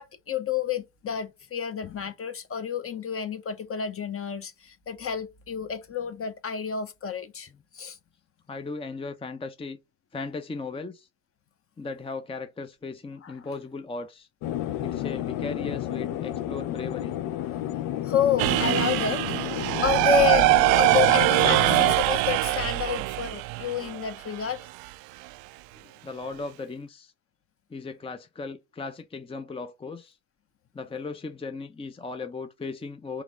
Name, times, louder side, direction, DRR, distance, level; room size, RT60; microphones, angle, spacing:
voice 1, 0.0-7.5 7.7-8.0 13.2-13.3 18.0-19.3 19.8-20.5 20.8-24.6, left 8 dB, 35° left, 1.0 m, -29 dB
voice 2, 8.5-9.8 10.1-11.1 11.8-14.3 14.8-17.1 26.0-27.1 27.7-30.2 30.7-33.2, left 3 dB, 15° left, 0.7 m, -37 dB
sound 1, 14.4-22.0, left 13 dB, 60° left, 0.7 m, -31 dB
sound 2, 18.4-24.4, right 21 dB, 70° right, 0.5 m, -22 dB
4.9 x 3.1 x 3.3 m
hypercardioid pair, 70°, 39 cm